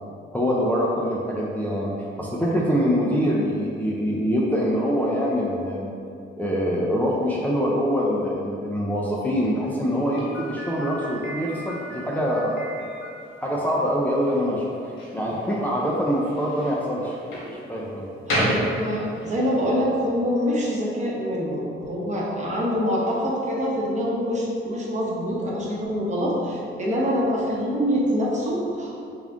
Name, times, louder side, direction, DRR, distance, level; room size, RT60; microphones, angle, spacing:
voice 1, 0.3-5.9 6.4-12.6 13.4-17.2 17.5-18.1, equal, 10° left, -5 dB, 0.4 m, -24 dB
Slam, 10.1-19.5, equal, 80° left, 0.9 m, -33 dB
voice 2, 18.3-29.1, equal, 35° right, -4 dB, 0.9 m, -25 dB
3.6 x 2.5 x 3.4 m, 2.6 s
cardioid pair, 90°, 20 cm